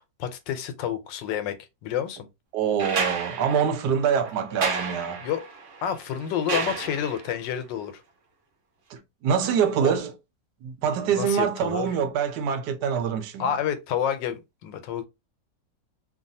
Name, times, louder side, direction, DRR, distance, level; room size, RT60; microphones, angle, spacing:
voice 1, 0.0-1.6 1.8-2.3 5.2-5.4 5.8-8.0 9.8-10.0 11.1-11.9 13.4-15.0, left 8 dB, 85° left, 1.3 m, -29 dB
voice 2, 2.5-5.2 8.9-10.1 10.6-13.5, right 7 dB, 75° right, 1.2 m, -25 dB
sound 1, 2.8-7.4 9.0-9.1, right 4 dB, 60° right, 0.8 m, -32 dB
3.1 x 2.3 x 2.6 m
omnidirectional pair, 1.9 m